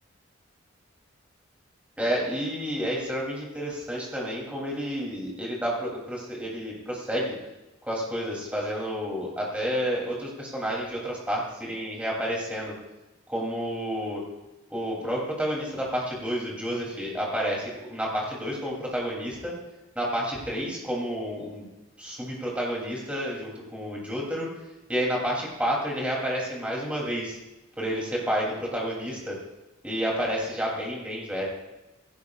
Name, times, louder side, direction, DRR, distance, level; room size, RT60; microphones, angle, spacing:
voice 1, 2.0-7.3 7.8-12.7 13.3-14.2 14.7-19.5 19.9-21.6 22.0-24.5 24.9-27.4 27.8-29.4 29.8-31.4, equal, 5° right, -3 dB, 3.0 m, -30 dB
16.5 x 15.0 x 2.4 m, 1.0 s
head